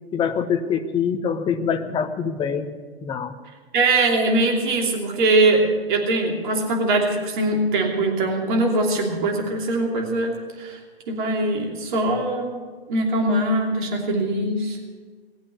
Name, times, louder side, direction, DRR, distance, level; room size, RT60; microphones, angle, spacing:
voice 1, 0.1-3.3, left 7 dB, 15° left, 8 dB, 0.9 m, -25 dB
voice 2, 3.7-10.8 11.1-12.6 12.9-14.8, right 2 dB, 50° right, 1 dB, 3.0 m, -22 dB
19.5 x 8.6 x 8.2 m, 1.5 s
figure-of-eight pair, 115°, 31 cm